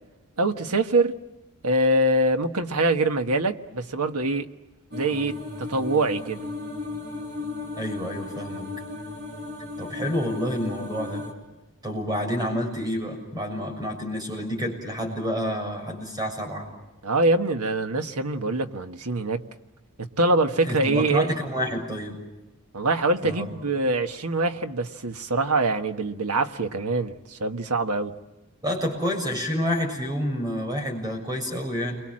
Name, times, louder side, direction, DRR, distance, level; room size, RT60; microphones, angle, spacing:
voice 1, 0.4-1.2 1.6-4.5 4.9-6.5 17.0-19.4 20.0-21.3 22.7-28.1, right 2 dB, 90° right, 7 dB, 1.5 m, -24 dB
sound 1, 4.9-11.3, left 3 dB, 45° right, 3.9 m, -35 dB
voice 2, 7.8-8.7 9.8-11.2 11.8-16.7 20.7-22.2 23.2-23.5 28.6-32.0, equal, 20° right, 3 dB, 6.8 m, -28 dB
30.0 x 23.5 x 7.6 m, 1.0 s
head